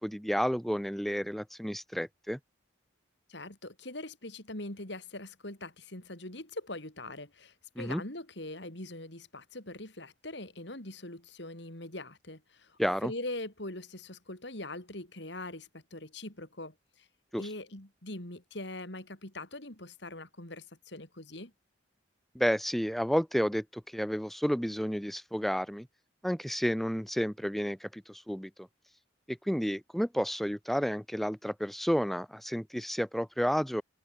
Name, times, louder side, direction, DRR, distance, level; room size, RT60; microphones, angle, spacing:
voice 1, 0.0-2.4 7.8-8.0 12.8-13.1 17.3-17.5 22.4-25.9 26.2-28.7 29.3-33.8, equal, ahead, 1.9 m, -31 dB
voice 2, 3.3-16.7 17.4-21.5, left 2 dB, 60° left, 4.3 m, -42 dB
head